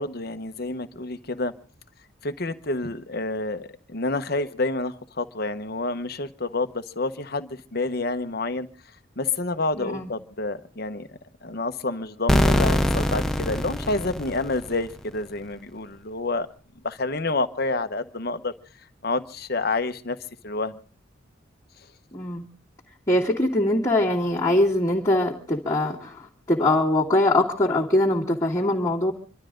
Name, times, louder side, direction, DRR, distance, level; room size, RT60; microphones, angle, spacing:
voice 1, 0.0-1.5 2.2-8.7 9.2-16.5 16.8-18.5 19.0-20.2 20.4-20.8, left 2 dB, 50° left, 9 dB, 1.1 m, -28 dB
voice 2, 9.8-10.1 22.1-22.4 23.1-29.1, left 1 dB, 20° left, -6 dB, 2.3 m, -22 dB
sound 1, 12.3-15.0, equal, ahead, 0.8 m, -23 dB
27.0 x 12.5 x 3.8 m, 0.40 s
head